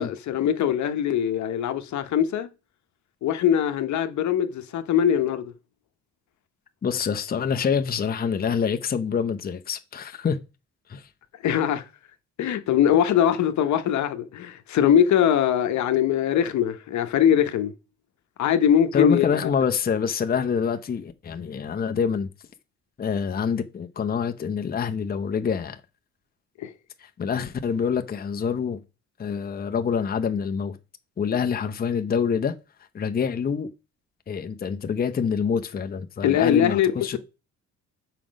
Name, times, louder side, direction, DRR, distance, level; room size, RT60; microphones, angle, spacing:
voice 1, 0.0-2.5 3.2-5.5 11.4-11.8 12.4-17.7 18.4-19.2 26.6-26.7 36.2-37.2, left 9 dB, 70° left, 0.9 m, -22 dB
voice 2, 6.8-10.4 10.9-11.1 18.9-22.3 23.0-25.8 27.0-28.8 29.2-30.8 31.2-32.6 32.9-33.7 34.3-37.2, left 6 dB, 30° left, 0.7 m, -26 dB
5.8 x 5.0 x 5.2 m
cardioid pair, 90°, 30 cm